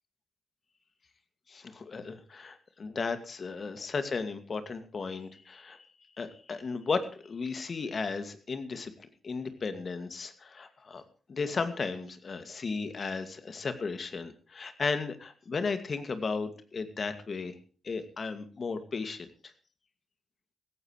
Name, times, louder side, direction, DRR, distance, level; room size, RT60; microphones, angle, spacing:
voice 1, 1.5-5.9 6.2-11.0 11.3-17.5 17.8-19.5, left 4 dB, 50° left, 9 dB, 2.2 m, -35 dB
17.0 x 15.0 x 3.2 m, 0.41 s
hypercardioid pair, 45°, 0 cm